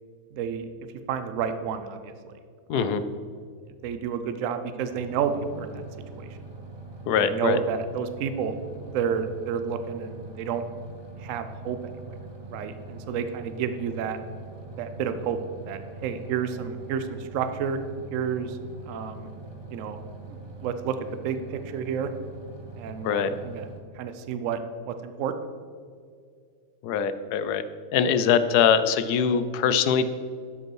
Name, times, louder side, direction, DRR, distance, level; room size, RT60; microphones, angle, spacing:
voice 1, 0.3-0.7 1.1-2.3 2.7-3.0 3.8-5.8 6.1-6.4 7.1-8.5 8.8-10.6 11.2-11.8 12.5-14.2 14.8-15.4 15.7-17.8 18.1-18.6 18.9-19.3 19.7-20.0 20.3-21.0 21.2-22.1 22.8-23.7 23.9-24.6 24.9-25.3, right 7 dB, 65° right, 9 dB, 0.9 m, -30 dB
voice 2, 2.7-3.0 7.1-7.6 23.0-23.3 26.8-27.6 27.9-30.1, left 7 dB, 85° left, 12 dB, 1.2 m, -22 dB
sound 1, 4.9-23.8, right 3 dB, 25° right, 0.6 m, -43 dB
12.5 x 5.1 x 4.7 m, 2.1 s
omnidirectional pair, 1.6 m